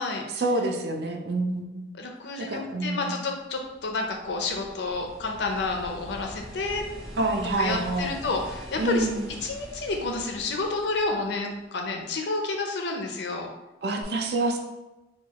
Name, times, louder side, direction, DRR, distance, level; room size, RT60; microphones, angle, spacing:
voice 1, 0.4-1.8 2.4-3.2 7.2-8.2 8.8-9.3 13.8-14.6, right 2 dB, 65° right, 3 dB, 0.5 m, -27 dB
voice 2, 2.0-6.8 7.6-9.1 9.4-13.5, left 3 dB, 75° left, 3 dB, 0.6 m, -30 dB
sound 1, 3.4-11.9 14.0-14.1, equal, ahead, 0.6 m, -44 dB
4.4 x 2.3 x 2.9 m, 1.0 s
head